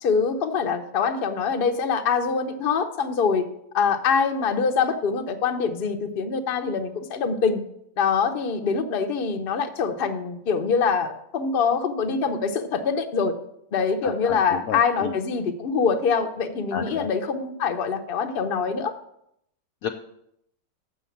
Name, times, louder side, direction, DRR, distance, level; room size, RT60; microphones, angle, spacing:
voice 1, 0.0-3.5 3.7-7.6 8.0-13.3 13.7-18.9, left 5 dB, 45° left, 7 dB, 0.7 m, -24 dB
voice 2, 14.0-15.1 16.7-17.1 19.8-19.9, left 8 dB, 70° left, 5 dB, 0.9 m, -31 dB
7.6 x 6.2 x 7.1 m, 0.76 s
omnidirectional pair, 1.9 m